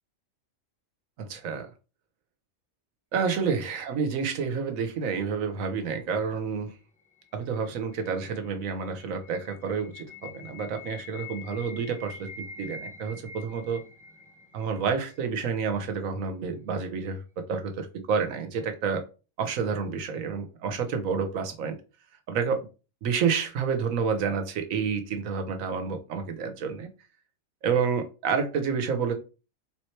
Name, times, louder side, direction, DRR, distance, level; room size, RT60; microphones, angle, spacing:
voice 1, 1.2-1.7 3.1-6.7 7.3-13.8 14.5-19.0 19.4-21.8 22.3-22.7 23.0-26.9 27.6-29.1, right 6 dB, 80° right, 1.2 m, -29 dB
sound 1, 6.8-15.8, left 3 dB, 5° left, 0.8 m, -46 dB
3.8 x 3.1 x 4.3 m
omnidirectional pair, 1.4 m